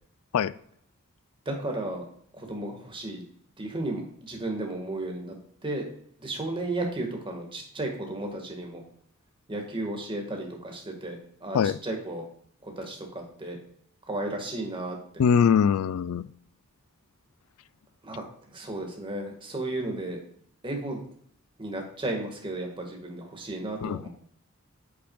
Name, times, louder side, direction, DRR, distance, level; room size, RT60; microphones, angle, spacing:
voice 1, 1.4-2.0 2.3-3.2 3.6-5.3 5.6-5.8 6.2-8.8 9.5-12.2 12.6-13.6 14.1-15.2 18.0-20.2 20.6-21.0 21.6-24.1, right 2 dB, 25° right, 2 dB, 1.6 m, -34 dB
voice 2, 15.2-16.3 23.8-24.1, left 7 dB, 80° left, 17 dB, 0.3 m, -22 dB
8.2 x 6.0 x 2.3 m, 0.63 s
head